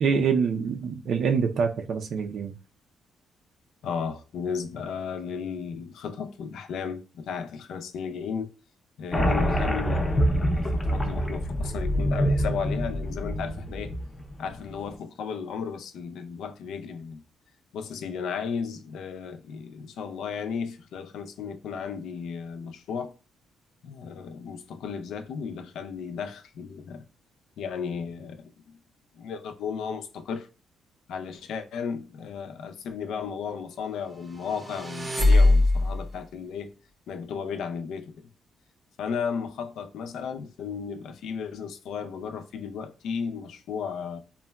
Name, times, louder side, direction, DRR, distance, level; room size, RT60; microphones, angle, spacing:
voice 1, 0.0-2.5, right 6 dB, 65° right, 0.4 m, -25 dB
voice 2, 3.8-8.5 9.0-13.9 14.4-17.2 17.7-23.1 23.8-27.0 27.6-28.5 29.1-30.5 31.1-36.7 37.1-38.3 39.0-44.2, left 6 dB, 75° left, 0.4 m, -34 dB
sound 1, 9.1-14.4, equal, 20° left, 0.5 m, -26 dB
sound 2, 34.3-36.1, left 2 dB, 20° right, 0.6 m, -21 dB
3.7 x 2.1 x 2.2 m
cardioid pair, 90°, 0 cm